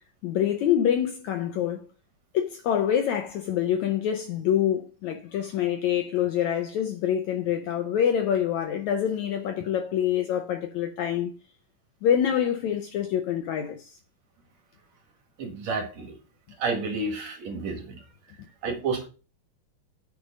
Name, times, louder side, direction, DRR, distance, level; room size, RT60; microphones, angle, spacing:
voice 1, 0.2-1.8 2.3-11.3 12.0-14.0, left 9 dB, 75° left, 1.7 m, -26 dB
voice 2, 15.4-16.2 16.6-17.9 18.6-19.1, right 4 dB, 55° right, 2.8 m, -30 dB
9.6 x 5.3 x 5.2 m
omnidirectional pair, 4.0 m